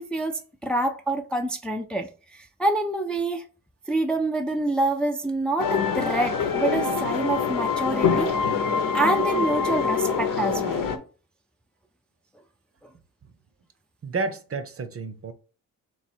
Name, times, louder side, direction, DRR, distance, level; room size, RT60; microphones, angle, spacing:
voice 1, 0.0-3.4 3.9-8.4 8.9-10.8, right 2 dB, 5° left, 0.5 m, -27 dB
sound 1, 5.6-11.0, left 6 dB, 65° left, 0.9 m, -25 dB
voice 2, 14.0-15.3, right 3 dB, 40° right, 0.7 m, -30 dB
3.2 x 3.2 x 4.4 m
cardioid pair, 75°, 35 cm